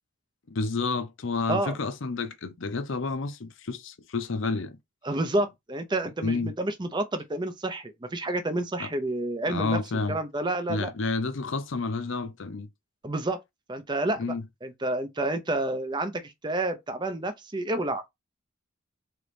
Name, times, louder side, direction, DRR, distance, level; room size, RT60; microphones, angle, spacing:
voice 1, 0.5-4.8 6.2-6.5 8.8-8.9 9.5-10.2 10.7-12.7 14.2-14.4, left 3 dB, 60° left, 0.6 m, -30 dB
voice 2, 5.0-9.8 10.1-10.9 13.0-13.4 13.7-14.3 14.6-18.0, right 2 dB, 20° right, 0.6 m, -29 dB
3.9 x 3.0 x 3.3 m
head